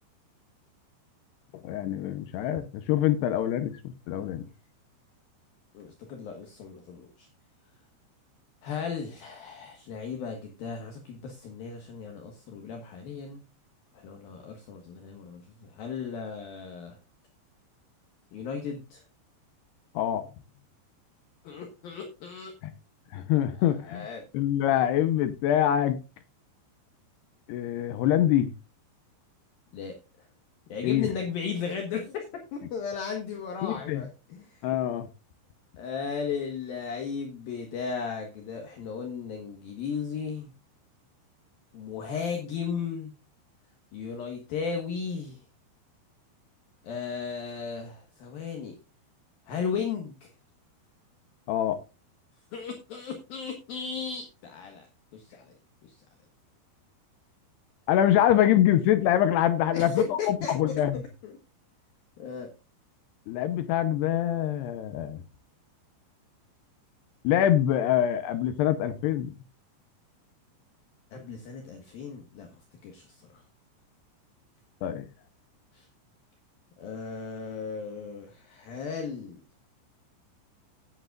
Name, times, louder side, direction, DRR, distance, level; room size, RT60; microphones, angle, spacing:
voice 1, 1.6-4.5 20.0-20.2 23.1-24.1 24.3-26.0 27.5-28.5 30.8-31.1 33.6-34.0 34.6-35.1 51.5-51.8 57.9-61.0 63.3-65.2 67.2-69.3 74.8-75.1, left 11 dB, 80° left, 2.7 m, -25 dB
voice 2, 5.7-7.3 8.6-13.4 13.9-17.0 18.3-19.0 21.4-22.5 23.6-24.2 29.7-29.9 30.7-32.2 32.5-34.7 35.8-40.5 41.7-43.1 43.9-45.4 46.8-48.8 49.5-50.3 52.5-54.9 55.1-55.6 55.8-56.0 59.7-60.7 61.2-61.4 62.2-62.5 71.1-72.5 72.8-73.4 75.7-75.9 76.8-79.4, left 6 dB, 65° left, 2.9 m, -35 dB
17.0 x 7.9 x 2.4 m
omnidirectional pair, 5.2 m